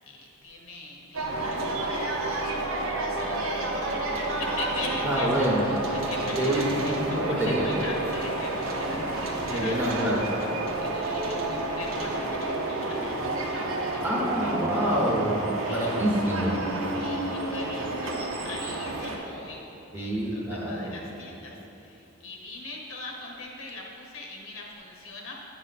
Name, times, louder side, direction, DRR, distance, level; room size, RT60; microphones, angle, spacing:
voice 1, 0.0-9.8 10.8-13.3 13.9-14.3 15.6-16.0 16.8-25.4, left 3 dB, 75° left, -1 dB, 1.1 m, -41 dB
sound 1, 1.1-19.2, right 2 dB, 70° right, 0.8 m, -30 dB
voice 2, 5.0-5.6 6.3-7.7 9.5-10.3 14.0-16.6 19.9-20.9, right 1 dB, 10° right, -5 dB, 1.1 m, -27 dB
8.6 x 5.1 x 4.2 m, 2.9 s
head